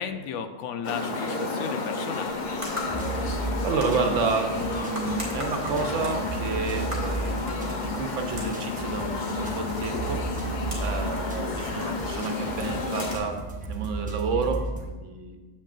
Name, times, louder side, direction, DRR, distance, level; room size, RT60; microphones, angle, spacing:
voice 1, 0.0-2.4 12.4-12.8, left 7 dB, 80° left, 9 dB, 0.9 m, -35 dB
sound 1, 0.8-13.2, left 3 dB, 45° left, 0.8 m, -31 dB
sound 2, 2.1-14.6, equal, 25° right, 1.9 m, -43 dB
sound 3, 2.9-14.9, right 2 dB, 10° right, 0.8 m, -35 dB
voice 2, 3.1-13.4 13.7-15.4, right 5 dB, 80° right, 5 dB, 1.1 m, -31 dB
9.0 x 7.5 x 2.5 m, 1.2 s
omnidirectional pair, 1.3 m